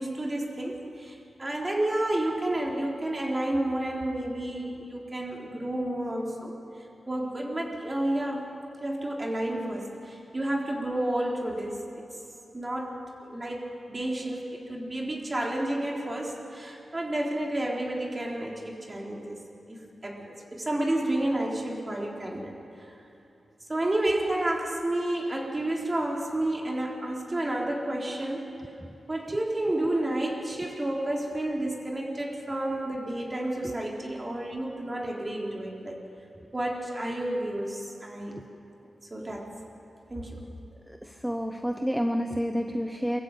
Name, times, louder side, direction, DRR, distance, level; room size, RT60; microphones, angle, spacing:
voice 1, 0.0-6.5 7.1-8.5 8.8-12.1 12.5-12.9 13.2-19.4 19.7-22.6 23.7-28.5 29.1-36.0 36.5-38.4 39.1-39.5 40.1-40.4, right 1 dB, 25° right, -1 dB, 3.9 m, -30 dB
voice 2, 40.9-43.2, equal, ahead, 5 dB, 0.9 m, -29 dB
23.5 x 14.5 x 8.9 m, 2.7 s
cardioid pair, 75°, 0 cm